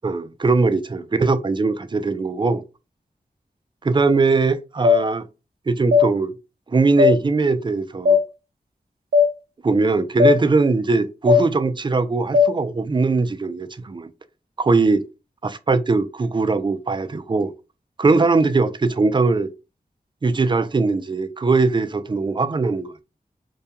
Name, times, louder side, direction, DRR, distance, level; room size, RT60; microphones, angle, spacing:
voice 1, 0.0-2.6 3.8-5.3 5.7-6.3 6.7-8.2 9.6-14.1 14.6-15.0 15.4-17.5 18.0-19.5 20.2-22.9, right 3 dB, 30° right, 0.3 m, -20 dB
sound 1, 4.8-5.0 5.9-6.1 7.0-7.1 8.0-8.2 9.1-9.3 10.2-10.4 11.3-11.4 12.3-12.5, left 5 dB, 85° right, 0.5 m, -14 dB
2.3 x 2.2 x 2.8 m
wide cardioid pair, 55°, 16 cm